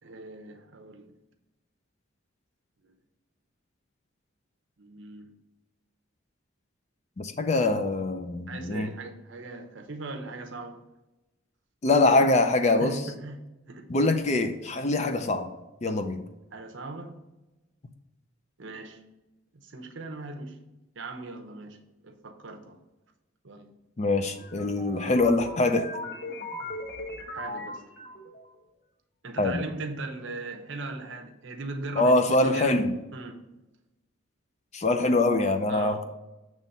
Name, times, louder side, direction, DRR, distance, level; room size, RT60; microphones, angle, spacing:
voice 1, 0.0-1.1 2.8-2.9 4.8-5.4 8.5-10.8 12.8-13.9 16.5-17.2 18.6-19.0 19.5-20.6 21.0-22.8 23.4-23.7 27.2-27.9 29.2-32.8 33.1-33.5 35.7-36.0, right 3 dB, 60° right, 0.8 m, -39 dB
voice 2, 7.2-8.9 11.8-13.0 13.9-15.5 15.8-16.3 24.0-25.9 29.4-29.6 32.0-33.0 34.7-36.0, left 2 dB, 35° left, 0.5 m, -24 dB
sound 1, 24.3-28.5, left 1 dB, 50° left, 1.4 m, -38 dB
7.2 x 3.1 x 5.4 m
head